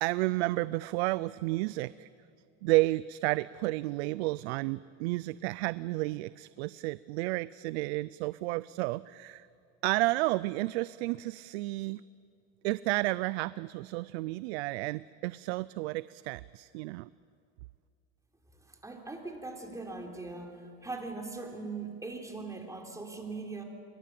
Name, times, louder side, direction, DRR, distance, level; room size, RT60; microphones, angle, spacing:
voice 1, 0.0-2.1 2.6-9.5 9.8-12.0 12.6-17.1, right 20 dB, 75° right, 18 dB, 0.5 m, -31 dB
voice 2, 18.7-20.6 20.8-23.6, right 3 dB, 10° right, 2 dB, 3.7 m, -40 dB
28.0 x 23.0 x 7.7 m, 2.5 s
supercardioid pair, 125°, 33 cm